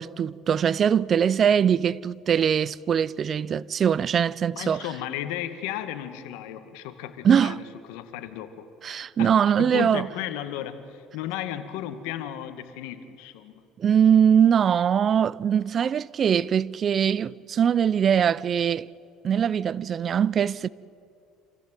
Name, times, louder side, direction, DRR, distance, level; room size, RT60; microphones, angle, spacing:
voice 1, 0.0-4.8 7.2-7.6 8.8-10.1 13.8-18.9 19.2-20.7, right 8 dB, 40° right, 0.5 m, -22 dB
voice 2, 4.5-7.6 7.9-8.7 9.2-13.6, left 11 dB, 85° left, 2.0 m, -34 dB
27.5 x 15.5 x 9.2 m
supercardioid pair, 105°, 0 cm